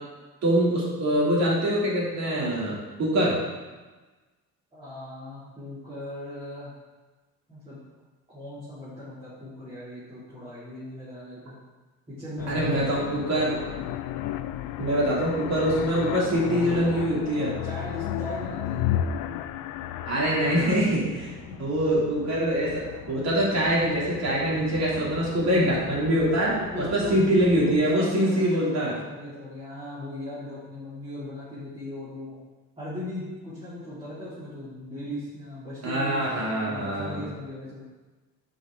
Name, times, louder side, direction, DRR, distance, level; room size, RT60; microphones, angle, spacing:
voice 1, 0.4-3.4 12.5-13.6 14.8-17.5 20.1-21.3 21.6-22.8 23.1-28.9 35.8-37.2, right 1 dB, 55° right, -5 dB, 2.9 m, -24 dB
voice 2, 4.7-6.7 7.5-7.8 8.3-11.5 12.1-13.9 17.6-18.8 21.5-21.6 26.4-27.3 27.9-32.4 32.8-37.8, left 1 dB, 20° right, -12 dB, 2.9 m, -38 dB
sound 1, 12.4-27.8, left 11 dB, 80° left, 0.5 m, -34 dB
10.5 x 5.5 x 3.8 m, 1.2 s
cardioid pair, 160°, 33 cm